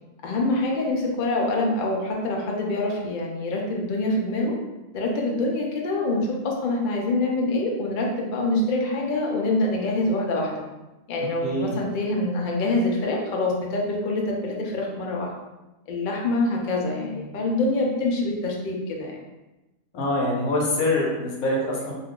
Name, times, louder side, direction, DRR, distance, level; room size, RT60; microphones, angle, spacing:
voice 1, 0.2-4.6 4.9-10.6 11.1-15.3 15.9-19.2, left 2 dB, 60° left, -1 dB, 0.5 m, -25 dB
voice 2, 11.4-11.8 19.9-21.9, left 1 dB, 80° left, -2 dB, 1.2 m, -24 dB
2.6 x 2.3 x 3.6 m, 1.0 s
omnidirectional pair, 1.5 m